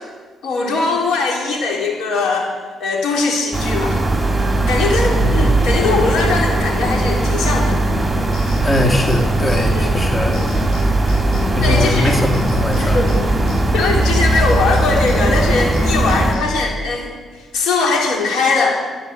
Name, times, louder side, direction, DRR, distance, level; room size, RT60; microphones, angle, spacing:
voice 1, 0.4-2.5 2.8-4.0 4.7-7.8 9.5-9.9 11.6-12.2 12.8-13.1 13.7-18.8, left 3 dB, 75° left, -1 dB, 3.9 m, -20 dB
sound 1, 3.5-16.3, right 2 dB, 15° right, 2.8 m, -18 dB
voice 2, 5.2-5.5 8.6-10.4 11.5-13.0, left 1 dB, 20° left, 1 dB, 2.1 m, -20 dB
sound 2, 8.3-14.1 14.3-16.7, left 1 dB, 60° left, 5.7 m, -28 dB
14.0 x 10.5 x 8.2 m, 1.4 s
cardioid pair, 90°, 0 cm